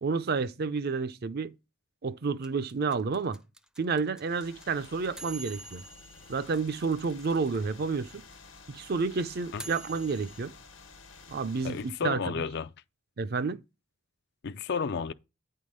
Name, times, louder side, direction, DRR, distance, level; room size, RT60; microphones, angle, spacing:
voice 1, 0.0-1.5 2.0-3.4 3.8-5.8 6.3-8.2 8.7-10.5 11.3-12.2 13.2-13.6, right 4 dB, 50° right, 0.5 m, -30 dB
sound 1, 2.4-7.6 7.8-7.9 8.1-10.4, right 2 dB, 5° right, 0.5 m, -46 dB
sound 2, 4.2-12.1, left 4 dB, 80° left, 1.3 m, -52 dB
voice 2, 11.6-12.7 14.4-15.1, left 5 dB, 55° left, 0.4 m, -32 dB
9.4 x 3.7 x 6.3 m
head